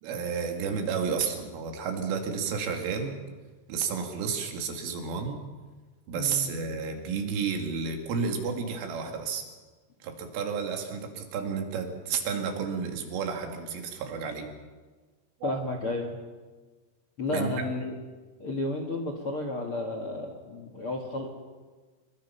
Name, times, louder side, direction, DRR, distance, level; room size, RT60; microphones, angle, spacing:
voice 1, 0.0-3.1 3.7-5.4 6.1-9.4 10.0-14.5 15.4-15.5 17.3-17.5, right 6 dB, 90° right, 4 dB, 4.9 m, -31 dB
voice 2, 6.1-6.5 15.4-16.2 17.2-17.9 18.4-21.3, left 2 dB, 50° left, 3 dB, 1.7 m, -32 dB
26.5 x 22.5 x 5.8 m, 1.4 s
omnidirectional pair, 5.5 m